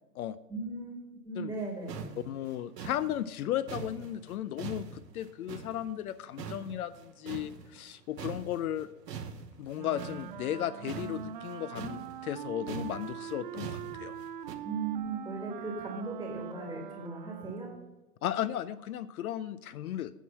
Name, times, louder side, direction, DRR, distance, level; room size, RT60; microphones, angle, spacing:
voice 1, 0.5-2.1 14.6-17.7, right 3 dB, 5° right, -1 dB, 1.4 m, -37 dB
sound 1, 1.6-1.7 1.9-6.1 6.4-7.9 8.2-14.6, right 6 dB, 90° right, 1.1 m, -43 dB
voice 2, 2.3-8.9 9.6-14.2 18.2-20.1, left 11 dB, 65° left, 15 dB, 0.5 m, -35 dB
Wind instrument woodwind instrument, 9.7-18.0, right 10 dB, 35° right, 0.4 m, -42 dB
9.1 x 4.6 x 7.3 m, 1.1 s
hypercardioid pair, 130°, 48 cm